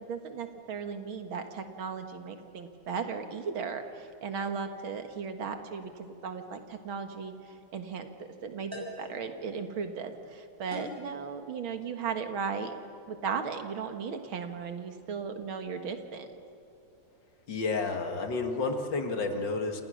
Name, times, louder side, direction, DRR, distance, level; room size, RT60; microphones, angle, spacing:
voice 1, 0.1-12.7 13.1-16.3, right 6 dB, 85° right, 6 dB, 2.5 m, -36 dB
sound 1, 7.1-7.3 8.7-9.1 10.7-11.1, left 1 dB, 10° right, 6.2 m, -42 dB
voice 2, 17.5-19.8, left 3 dB, 65° left, 5 dB, 2.6 m, -31 dB
28.5 x 28.0 x 6.4 m, 2.6 s
omnidirectional pair, 2.2 m